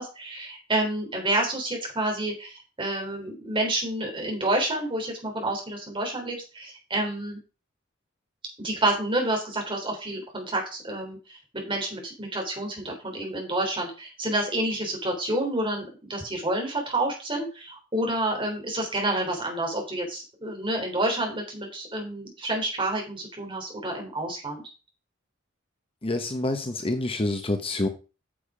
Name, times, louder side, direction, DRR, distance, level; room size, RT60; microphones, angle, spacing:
voice 1, 0.0-7.4 8.6-11.2 11.5-24.6, right 1 dB, 25° right, 1 dB, 3.6 m, -29 dB
voice 2, 26.0-27.9, left 2 dB, 25° left, 7 dB, 0.9 m, -27 dB
8.7 x 7.1 x 4.9 m, 0.33 s
head